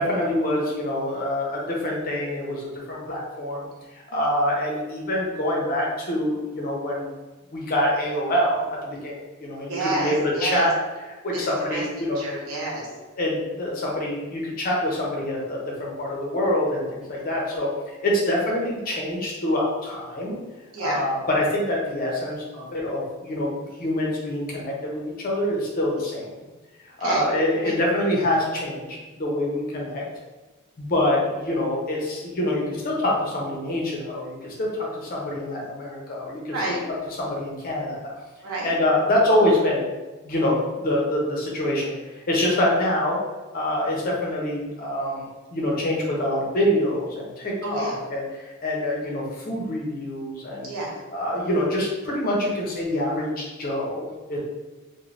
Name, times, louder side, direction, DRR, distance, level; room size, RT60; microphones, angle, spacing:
voice 1, 0.0-3.6 3.9-7.1 7.5-10.7 11.2-12.2 13.2-20.3 20.8-23.5 23.8-26.3 27.0-30.0 30.8-36.5 37.2-38.0 38.6-39.8 40.2-43.2 43.5-50.7 51.1-54.4, left 1 dB, 45° left, -3 dB, 0.7 m, -25 dB
voice 2, 9.7-10.7 11.3-11.8 12.1-12.9 17.0-17.2 20.7-21.0 27.0-27.2 27.6-27.7 36.5-36.8 38.4-38.7 47.6-48.0 50.6-50.9, right 2 dB, 75° right, -4 dB, 0.8 m, -29 dB
3.1 x 2.2 x 2.5 m, 1.2 s
head